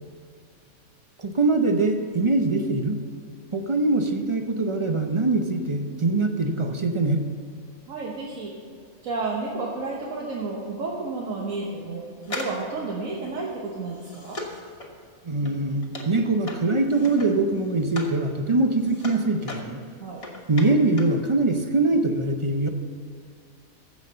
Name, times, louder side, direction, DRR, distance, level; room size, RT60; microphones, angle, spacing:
voice 1, 1.2-3.0 3.5-7.2 15.2-19.8 20.5-22.7, right 2 dB, 40° right, 6 dB, 0.4 m, -23 dB
voice 2, 7.9-8.5 9.0-14.4 20.0-20.2, right 3 dB, 70° right, -2 dB, 1.6 m, -31 dB
sound 1, 12.2-18.2 18.5-21.2 21.5-21.6, left 2 dB, 25° left, 1.2 m, -39 dB
14.5 x 5.3 x 6.7 m, 2.2 s
omnidirectional pair, 1.5 m